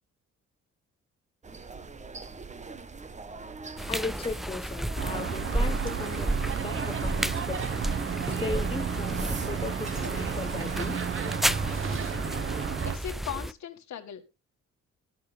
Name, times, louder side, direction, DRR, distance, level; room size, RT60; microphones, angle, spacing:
sound 1, 1.4-12.8, right 4 dB, 25° right, 1.1 m, -43 dB
sound 2, 3.8-13.5, right 1 dB, ahead, 0.5 m, -33 dB
voice 1, 3.9-7.9 8.3-11.1 11.9-12.3, left 3 dB, 20° left, 0.9 m, -37 dB
sound 3, 5.0-13.0, right 7 dB, 45° right, 1.1 m, -32 dB
voice 2, 12.8-14.2, left 9 dB, 65° left, 1.9 m, -38 dB
13.0 x 11.0 x 3.4 m
cardioid pair, 90°, 30 cm